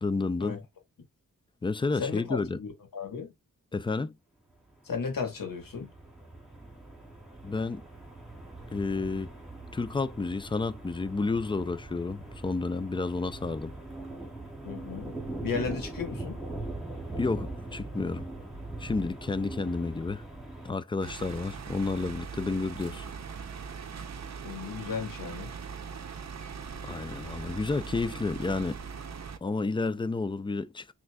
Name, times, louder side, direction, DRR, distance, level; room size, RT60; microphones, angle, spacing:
voice 1, 0.0-0.6 1.6-2.6 3.7-4.1 7.4-7.8 8.7-9.3 9.7-13.7 17.2-18.3 18.8-20.2 20.6-23.1 26.9-28.8 29.4-30.9, left 3 dB, 15° left, 0.3 m, -31 dB
voice 2, 2.0-3.3 4.8-5.9 14.6-16.4 24.4-25.5, left 5 dB, 90° left, 1.2 m, -35 dB
sound 1, 4.8-20.7, right 2 dB, ahead, 1.8 m, -41 dB
sound 2, 21.0-29.4, right 6 dB, 55° right, 0.6 m, -40 dB
5.9 x 2.6 x 2.2 m
wide cardioid pair, 65°, 33 cm